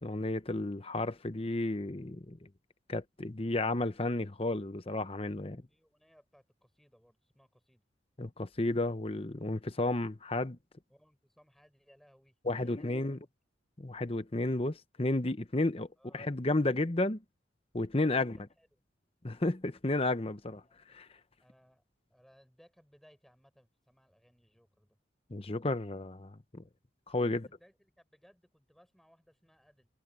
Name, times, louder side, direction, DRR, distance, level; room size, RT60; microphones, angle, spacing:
voice 1, 0.0-2.4 2.9-5.6 8.2-10.6 12.4-13.2 13.8-15.9 16.1-17.2 17.7-18.4 19.2-20.6 20.9-21.1 25.3-26.6 27.1-27.5, left 2 dB, 30° left, 0.9 m, -32 dB
voice 2, 5.5-7.8 10.9-13.2 16.0-16.2 18.6-18.8 20.6-20.7 21.4-25.0 27.3-29.9, equal, ahead, 5.6 m, -65 dB
head